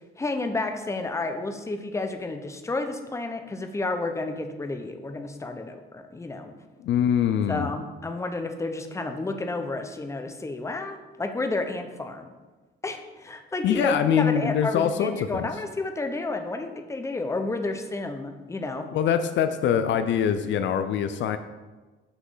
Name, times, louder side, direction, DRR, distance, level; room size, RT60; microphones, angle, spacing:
voice 1, 0.2-6.5 7.5-12.3 12.8-18.9, left 2 dB, 15° left, 6 dB, 0.6 m, -31 dB
voice 2, 6.8-7.7 13.6-15.5 18.9-21.4, left 8 dB, 70° left, 9 dB, 0.4 m, -24 dB
6.1 x 3.1 x 5.4 m, 1.3 s
cardioid pair, 90°, 20 cm